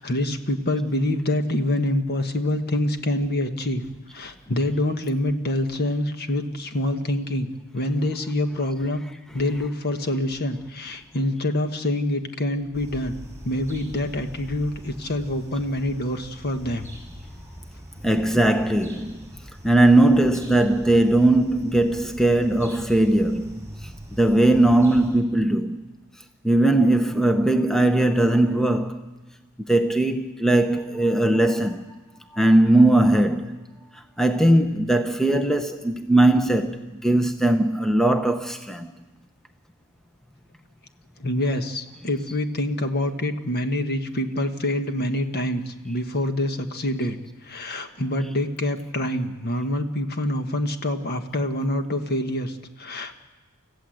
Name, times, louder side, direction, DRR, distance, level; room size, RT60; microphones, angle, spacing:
voice 1, 0.0-3.8 4.1-9.0 9.3-13.2 13.4-16.9 41.2-53.2, left 1 dB, 45° left, 1.5 m, -26 dB
sound 1, 12.7-25.1, equal, 15° right, 7.6 m, -42 dB
voice 2, 18.0-19.2 19.6-25.8 26.4-29.0 29.7-31.8 32.3-33.6 33.9-38.9 42.3-42.4 48.2-48.3, right 1 dB, ahead, 0.8 m, -19 dB
29.5 x 15.0 x 7.9 m
head